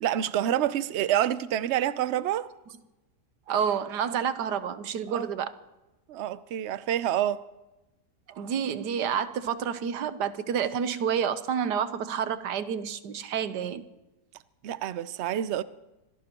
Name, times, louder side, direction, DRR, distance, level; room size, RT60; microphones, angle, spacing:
voice 1, 0.0-2.5 5.1-5.3 6.1-7.4 14.6-15.6, right 11 dB, 60° right, 0.7 m, -27 dB
voice 2, 3.5-5.5 8.3-13.8, right 8 dB, 80° right, 1.5 m, -29 dB
25.5 x 17.5 x 3.0 m
omnidirectional pair, 1.8 m